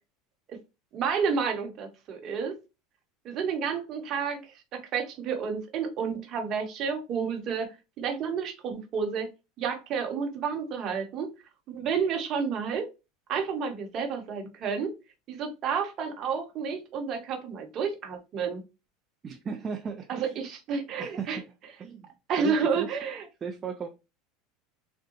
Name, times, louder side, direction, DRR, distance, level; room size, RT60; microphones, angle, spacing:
voice 1, 0.9-2.6 3.2-9.3 9.6-11.3 11.7-12.9 13.3-14.9 15.3-18.6 20.1-21.4 22.3-23.3, right 6 dB, 45° right, 0.9 m, -30 dB
voice 2, 19.2-20.4 21.0-21.5 21.8-22.1 22.4-23.0 23.4-23.9, right 6 dB, 30° right, 0.4 m, -36 dB
3.6 x 2.1 x 2.8 m
supercardioid pair, 110°, 0 cm